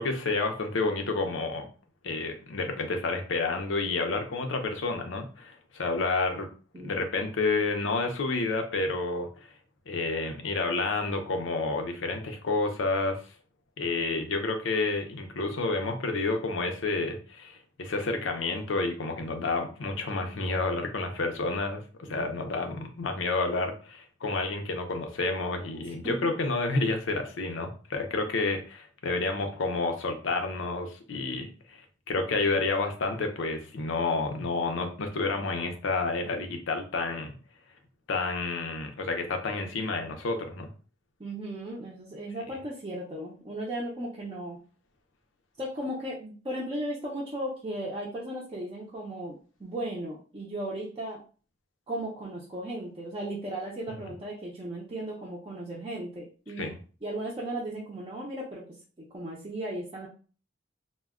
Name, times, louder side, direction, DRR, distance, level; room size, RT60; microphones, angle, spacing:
voice 1, 0.0-1.7 2.0-6.5 6.8-9.3 9.9-13.2 13.8-31.8 32.1-37.3 38.1-40.7 53.9-54.0 56.6-56.8, left 3 dB, 90° left, 5 dB, 0.6 m, -30 dB
voice 2, 6.7-7.3 22.1-22.5 25.8-26.2 41.2-44.6 45.6-51.2 51.9-56.7 57.0-58.6 59.1-60.1, right 1 dB, 25° right, -6 dB, 0.5 m, -36 dB
2.2 x 2.1 x 3.5 m, 0.38 s
head